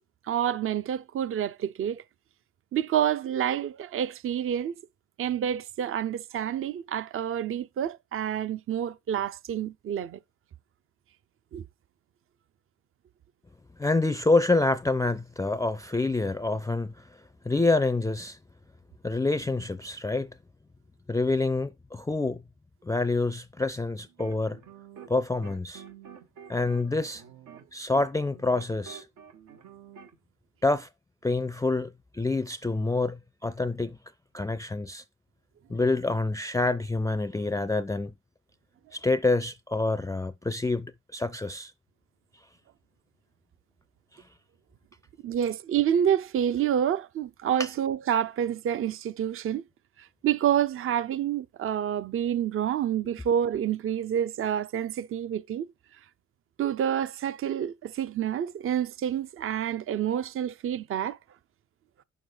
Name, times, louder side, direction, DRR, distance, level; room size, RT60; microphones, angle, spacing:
voice 1, 0.3-2.0 2.7-4.8 5.2-10.2 11.5-11.6 45.2-49.6 50.0-55.7 56.6-61.2, right 10 dB, 45° right, 0.5 m, -28 dB
voice 2, 13.8-17.1 17.5-18.4 19.0-20.3 21.1-22.4 22.8-24.6 25.1-25.8 26.5-27.2 27.7-29.0 30.6-30.9 31.2-34.0 34.3-35.0 35.7-38.1 38.9-41.7 47.6-47.7, left 3 dB, 10° left, 0.4 m, -27 dB
sound 1, 24.0-25.2 25.4-30.2, right 8 dB, 90° right, 1.5 m, -48 dB
7.0 x 6.5 x 3.8 m
cardioid pair, 90°, 30 cm